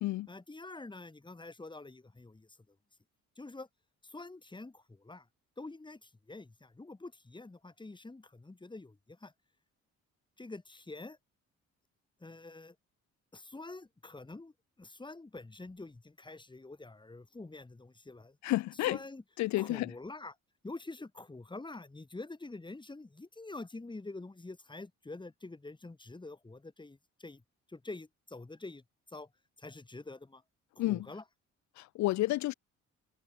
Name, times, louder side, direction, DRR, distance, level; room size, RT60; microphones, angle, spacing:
voice 1, 0.3-2.5 3.4-3.7 4.0-5.3 5.6-9.3 10.4-11.2 12.2-12.8 13.3-14.5 14.8-18.4 18.9-19.2 19.6-20.4 20.6-27.4 27.7-28.8 29.1-29.3 29.6-30.4 30.8-31.2, left 2 dB, 15° left, 2.5 m, -46 dB
voice 2, 18.4-19.0 19.4-19.9 30.8-31.1 31.8-32.5, left 17 dB, 70° left, 0.5 m, -30 dB
cardioid pair, 90°, 30 cm